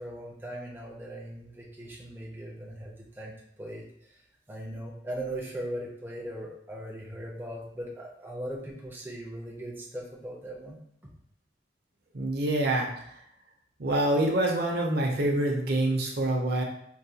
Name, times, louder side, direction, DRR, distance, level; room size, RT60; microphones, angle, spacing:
voice 1, 0.0-3.8 4.1-4.2 4.5-10.8, right 1 dB, 10° right, -4 dB, 0.5 m, -39 dB
voice 2, 12.1-12.9 13.8-16.6, right 1 dB, 55° right, 0 dB, 0.6 m, -26 dB
4.6 x 2.2 x 2.7 m, 0.71 s
head